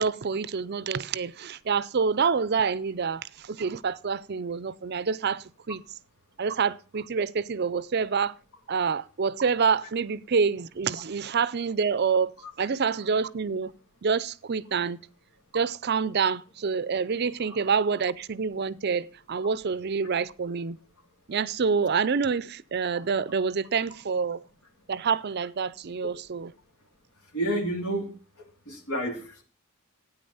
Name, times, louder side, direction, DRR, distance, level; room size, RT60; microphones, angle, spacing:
voice 1, 0.0-5.8 6.4-8.3 8.7-12.3 12.6-13.7 14.0-15.0 15.5-20.8 21.3-24.4 24.9-26.5, right 5 dB, 45° right, 0.5 m, -27 dB
voice 2, 27.3-28.1 28.7-29.4, right 1 dB, 75° left, 2.6 m, -29 dB
13.0 x 9.3 x 5.5 m
head